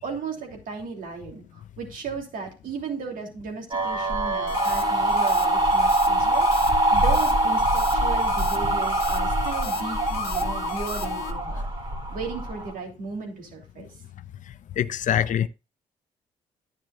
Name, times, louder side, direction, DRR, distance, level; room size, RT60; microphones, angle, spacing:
voice 1, 0.0-6.5 6.9-11.7 12.1-13.9, right 4 dB, 65° right, 3.0 m, -35 dB
sound 1, 3.7-12.7, right 1 dB, 35° right, 2.3 m, -23 dB
sound 2, 4.5-11.3, left 12 dB, 90° left, 0.9 m, -37 dB
voice 2, 14.8-15.5, left 10 dB, 60° left, 0.6 m, -24 dB
10.5 x 9.6 x 2.4 m
hypercardioid pair, 50°, 15 cm